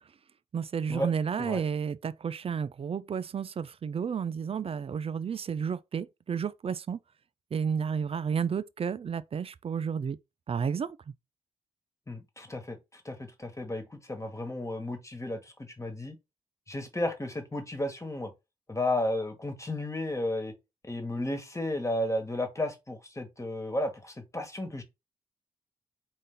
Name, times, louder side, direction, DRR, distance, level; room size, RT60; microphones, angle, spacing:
voice 1, 0.5-7.0 7.5-10.2 10.5-11.0, right 7 dB, 40° right, 0.4 m, -31 dB
voice 2, 12.1-16.2 16.7-18.3 18.7-20.5 20.8-24.8, left 1 dB, 20° left, 1.4 m, -33 dB
4.1 x 2.5 x 3.8 m
supercardioid pair, 40°, 14 cm